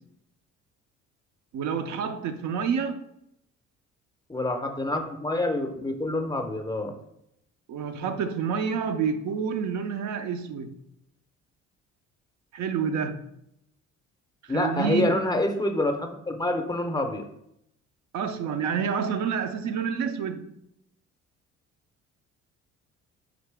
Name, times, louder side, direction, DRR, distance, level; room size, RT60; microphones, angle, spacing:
voice 1, 1.5-3.0 7.7-10.7 12.5-13.3 14.5-15.2 18.1-20.6, right 6 dB, 65° right, 0.5 m, -28 dB
voice 2, 4.3-6.9 14.5-17.3, left 1 dB, 15° left, 0.5 m, -27 dB
3.9 x 2.8 x 3.3 m
supercardioid pair, 70°, 32 cm